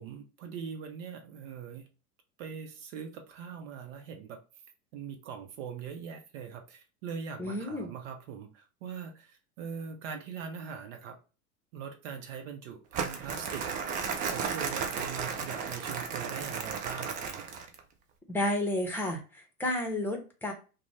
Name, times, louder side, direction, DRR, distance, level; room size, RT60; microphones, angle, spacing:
voice 1, 0.0-1.8 2.4-4.4 4.9-11.2 11.7-13.6 14.3-17.4, right 6 dB, 55° right, 5 dB, 0.9 m, -41 dB
voice 2, 7.4-7.9 18.3-20.5, left 1 dB, 5° left, 2 dB, 0.8 m, -31 dB
Crumpling crinkling, 12.9-17.8, right 6 dB, 20° right, 0.3 m, -34 dB
2.4 x 2.3 x 3.2 m, 0.33 s
figure-of-eight pair, 85°, 47 cm